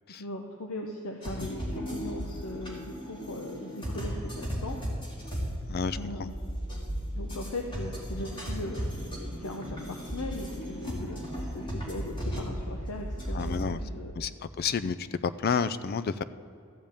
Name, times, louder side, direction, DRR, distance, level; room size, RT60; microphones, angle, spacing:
voice 1, 0.1-4.8 6.0-6.6 7.1-8.8 9.4-14.3, left 1 dB, 70° left, 3 dB, 0.9 m, -39 dB
sound 1, 1.2-13.6, equal, 20° left, 2.8 m, -35 dB
voice 2, 5.7-6.3 13.3-13.8 14.2-14.3 14.6-16.2, left 6 dB, 45° left, 14 dB, 0.4 m, -30 dB
14.0 x 5.3 x 8.7 m, 2.5 s
head